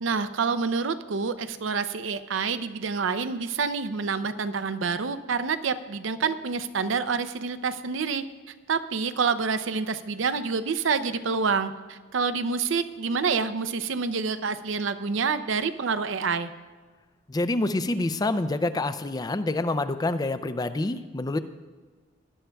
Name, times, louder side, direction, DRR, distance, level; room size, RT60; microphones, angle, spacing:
voice 1, 0.0-8.3 8.7-16.5, right 5 dB, 75° right, 12 dB, 0.6 m, -27 dB
voice 2, 17.3-21.4, left 2 dB, 20° left, 12 dB, 0.4 m, -27 dB
19.0 x 11.5 x 2.3 m, 1.4 s
head